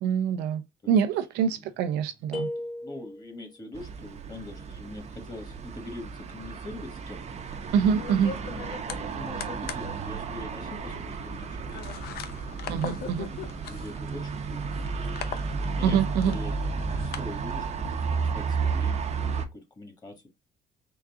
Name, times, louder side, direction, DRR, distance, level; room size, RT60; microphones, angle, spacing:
voice 1, 0.0-0.6 0.9-2.5 7.7-8.3 12.7-13.3 15.8-16.3, right 8 dB, 85° right, 0.5 m, -25 dB
sound 1, 2.3-3.5, left 1 dB, 5° left, 0.9 m, -35 dB
voice 2, 2.5-7.2 8.5-11.8 12.1-14.7 15.5-20.3, left 2 dB, 25° left, 1.5 m, -43 dB
sound 2, 3.7-19.5, right 5 dB, 40° right, 0.7 m, -33 dB
sound 3, 7.5-17.2, left 8 dB, 70° left, 0.6 m, -41 dB
3.9 x 2.4 x 3.5 m
cardioid pair, 110°, 17 cm